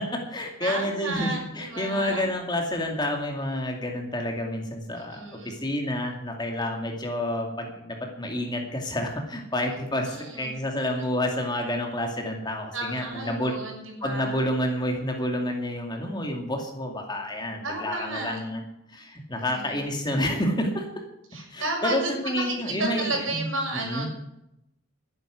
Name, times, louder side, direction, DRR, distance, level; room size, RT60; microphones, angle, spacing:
voice 1, 0.0-13.5 14.0-18.6 18.9-20.9 21.5-23.5 23.7-24.1, left 1 dB, 20° left, 2 dB, 2.5 m, -29 dB
voice 2, 0.6-2.2 4.9-5.6 9.6-10.5 12.7-14.5 17.6-18.4 19.4-19.8 21.3-24.1, right 2 dB, 70° right, 0 dB, 6.5 m, -33 dB
12.5 x 10.5 x 8.2 m, 0.79 s
head